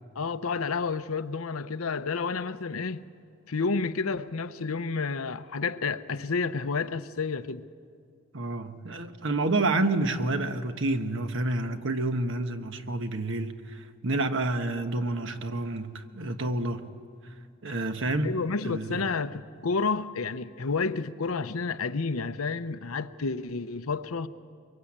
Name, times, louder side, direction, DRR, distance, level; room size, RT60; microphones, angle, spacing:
voice 1, 0.2-3.0 3.5-7.7 18.2-24.3, left 4 dB, 85° left, 0.8 m, -30 dB
voice 2, 8.3-16.9 17.6-18.3 18.6-19.0, right 2 dB, 65° right, 1.2 m, -29 dB
23.5 x 23.0 x 8.7 m
head